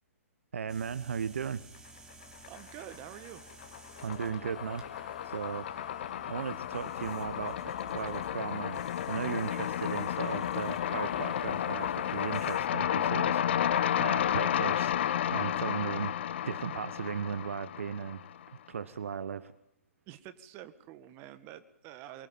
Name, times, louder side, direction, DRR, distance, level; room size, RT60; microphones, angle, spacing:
voice 1, 0.5-1.6 4.0-5.9 6.3-16.2 16.4-18.2 18.7-19.5, right 7 dB, 60° right, 14 dB, 1.2 m, -37 dB
sound 1, 0.7-12.6, right 3 dB, 10° right, 2.8 m, -54 dB
sound 2, 2.2-3.0 3.3-18.4, left 10 dB, 50° left, 1.0 m, -32 dB
voice 2, 2.5-3.4 20.1-22.3, right 12 dB, 30° right, 11 dB, 1.8 m, -47 dB
24.0 x 23.0 x 8.7 m, 0.73 s
figure-of-eight pair, 125°, 8 cm